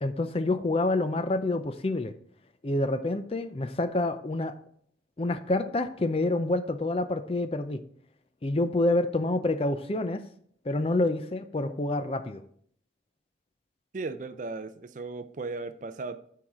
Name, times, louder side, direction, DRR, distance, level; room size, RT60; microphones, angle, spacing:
voice 1, 0.0-2.1 2.6-4.5 5.2-7.8 8.4-10.2 10.6-12.4, left 2 dB, 30° left, 10 dB, 0.5 m, -27 dB
voice 2, 13.9-16.2, right 3 dB, 45° right, 11 dB, 0.5 m, -36 dB
13.0 x 4.7 x 3.6 m, 0.62 s
head